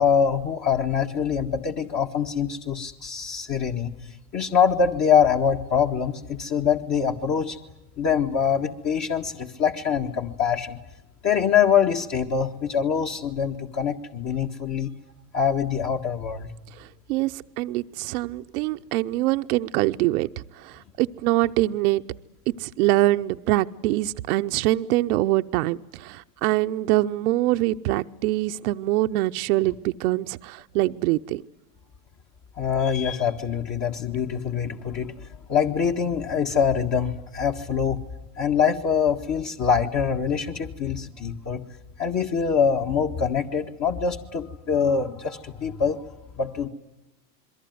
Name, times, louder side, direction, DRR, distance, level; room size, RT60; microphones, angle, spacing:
voice 1, 0.0-4.0 4.3-7.6 8.0-10.8 11.2-14.9 15.3-16.5 32.6-35.1 35.5-38.0 38.4-41.6 42.0-46.1 46.4-46.7, left 7 dB, 35° left, 2 dB, 1.8 m, -24 dB
voice 2, 16.8-20.3 20.6-22.0 22.5-31.4, right 17 dB, 70° right, 8 dB, 0.9 m, -24 dB
28.0 x 22.5 x 9.5 m, 0.95 s
supercardioid pair, 115°, 46 cm